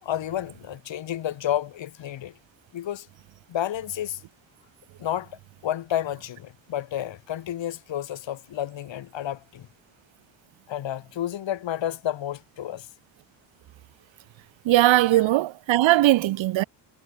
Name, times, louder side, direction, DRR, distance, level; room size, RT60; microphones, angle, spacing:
voice 1, 0.0-2.3 2.7-3.1 3.5-4.2 5.0-9.7 10.7-12.9, left 11 dB, 75° left, 4.9 m, -31 dB
voice 2, 14.6-16.6, right 16 dB, 85° right, 0.9 m, -19 dB
cardioid pair, 105°, 45 cm